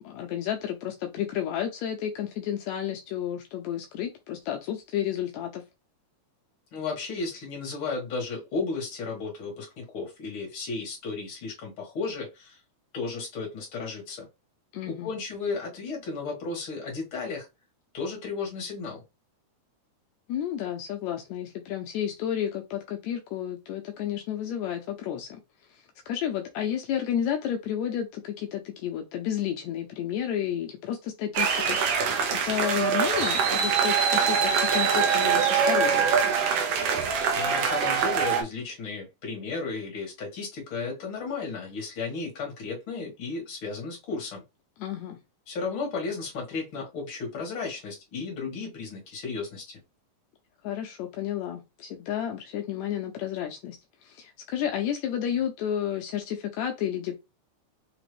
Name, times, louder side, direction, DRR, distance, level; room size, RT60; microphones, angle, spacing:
voice 1, 0.0-5.6 14.7-15.1 20.3-25.4 25.7-36.3 44.8-45.2 50.6-53.8 54.0-57.2, left 10 dB, 80° left, 1.7 m, -31 dB
voice 2, 6.7-12.6 12.9-14.3 14.9-17.5 17.9-19.0 37.3-44.4 45.5-49.8, left 4 dB, 50° left, 2.1 m, -34 dB
sound 1, 31.3-38.4, right 6 dB, 80° right, 1.3 m, -24 dB
5.1 x 2.9 x 3.2 m
omnidirectional pair, 3.6 m